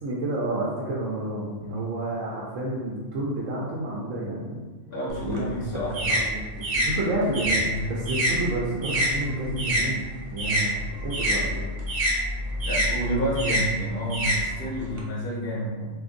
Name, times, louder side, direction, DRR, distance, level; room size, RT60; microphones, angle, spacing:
voice 1, 0.0-4.6 5.2-5.4 6.0-10.0 10.3-10.8 11.0-11.7, right 1 dB, 90° right, -5 dB, 1.0 m, -30 dB
voice 2, 4.9-5.9 7.7-7.8 10.4-10.6 12.6-15.9, equal, 60° left, -5 dB, 0.8 m, -29 dB
sound 1, 5.1-9.9 10.2-15.0, equal, 50° right, 0.5 m, -26 dB
2.5 x 2.5 x 3.6 m, 1.3 s
omnidirectional pair, 1.3 m